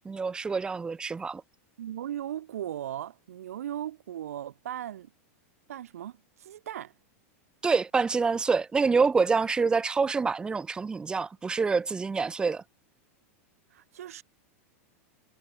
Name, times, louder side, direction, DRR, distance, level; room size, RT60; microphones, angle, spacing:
voice 1, 0.0-1.4 7.6-12.6, right 4 dB, 10° right, 0.4 m, -26 dB
voice 2, 1.8-5.1 5.7-6.9 13.7-14.2, right 11 dB, 85° right, 2.5 m, -37 dB
supercardioid pair, 130°, 8 cm